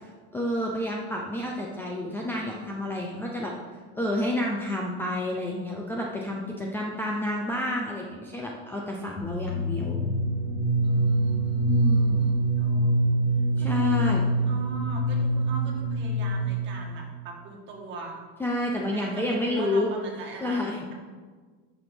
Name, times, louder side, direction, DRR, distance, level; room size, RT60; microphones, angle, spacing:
voice 1, 0.0-3.5 4.0-10.0 11.7-12.3 13.6-14.2 18.4-19.9 20.4-20.8, left 1 dB, 5° left, -1 dB, 0.5 m, -29 dB
sound 1, 9.2-16.8, right 1 dB, 55° left, 2.7 m, -25 dB
voice 2, 10.8-13.2 13.6-18.2 18.9-20.9, right 4 dB, 40° right, -1 dB, 1.9 m, -41 dB
8.5 x 6.2 x 5.2 m, 1.5 s
cardioid pair, 165°, 30 cm